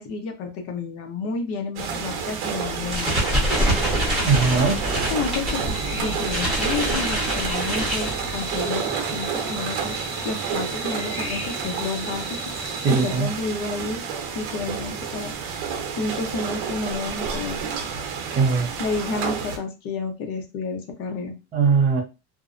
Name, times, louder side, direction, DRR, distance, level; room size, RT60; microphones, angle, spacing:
voice 1, 0.0-3.6 5.1-5.6 5.9-9.9 10.2-12.2 12.9-14.0 14.3-15.3 15.9-17.6 18.8-21.3, left 4 dB, 45° left, 4 dB, 0.6 m, -30 dB
sound 1, 1.8-19.6, right 6 dB, 60° right, 0.8 m, -30 dB
sound 2, 2.7-8.6, equal, ahead, 1.0 m, -26 dB
voice 2, 4.2-4.8 12.8-13.3 18.3-18.7 21.5-22.0, right 5 dB, 25° right, 1 dB, 0.6 m, -20 dB
sound 3, 5.4-13.2, equal, 20° left, 1.3 m, -36 dB
2.6 x 2.1 x 2.4 m, 0.28 s
supercardioid pair, 150°, 34 cm